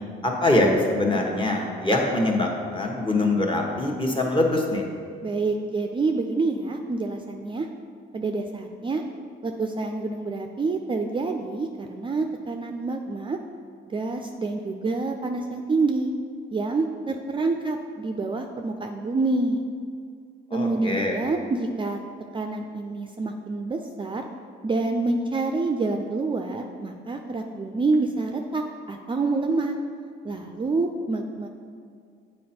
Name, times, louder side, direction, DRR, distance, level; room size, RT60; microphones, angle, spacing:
voice 1, 0.2-4.9 20.5-21.2, left 2 dB, 25° left, 0 dB, 1.1 m, -23 dB
voice 2, 5.2-7.7 8.1-9.0 9.4-13.4 13.9-16.1 16.5-19.6 20.5-22.0 22.3-24.2 24.6-29.7 30.2-31.5, right 3 dB, 25° right, 4 dB, 0.4 m, -27 dB
7.4 x 4.4 x 4.3 m, 2.2 s
cardioid pair, 90°, 20 cm